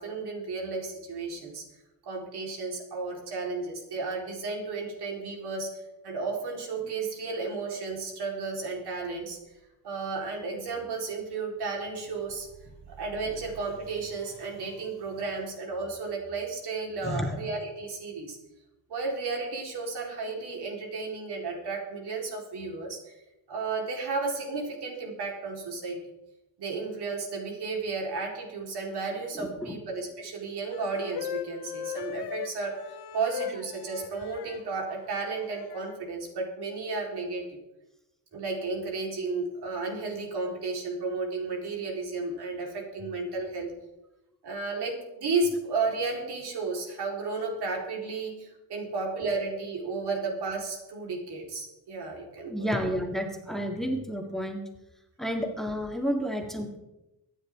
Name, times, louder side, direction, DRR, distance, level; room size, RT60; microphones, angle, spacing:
voice 1, 0.0-1.6 2.0-5.7 6.0-9.4 9.8-12.5 12.9-18.4 18.9-23.0 23.5-26.0 26.6-32.9 33.1-37.6 38.3-43.7 44.4-52.7, right 3 dB, 80° right, 0 dB, 4.1 m, -33 dB
voice 2, 29.4-29.8 52.5-54.6 55.2-56.8, equal, ahead, 2 dB, 1.8 m, -31 dB
sound 1, 30.7-34.6 35.3-35.9, left 9 dB, 85° left, 1.0 m, -38 dB
24.0 x 10.0 x 3.7 m, 0.96 s
wide cardioid pair, 135°, 39 cm